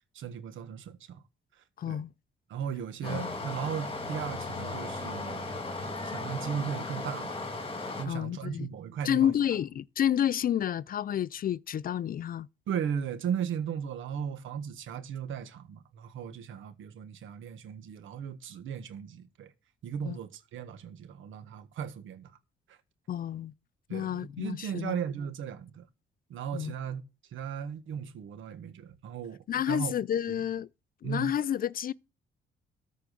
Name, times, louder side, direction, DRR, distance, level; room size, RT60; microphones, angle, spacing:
voice 1, 0.1-1.2 1.9-2.0 2.5-5.5 6.0-7.3 8.0-9.3 12.7-19.5 19.8-22.3 23.9-25.9 26.3-27.0 27.3-29.9 30.3-30.4 31.0-31.3, right 8 dB, 80° right, 1.4 m, -36 dB
voice 2, 1.8-2.1 3.0-3.4 8.1-8.7 9.0-12.5 20.1-20.2 23.1-23.5 23.9-25.0 26.5-26.7 29.5-30.7 31.0-31.9, left 10 dB, 45° left, 0.4 m, -30 dB
Stream, 3.0-8.1, left 2 dB, 30° left, 2.1 m, -36 dB
13.5 x 4.7 x 6.2 m
cardioid pair, 90°, 20 cm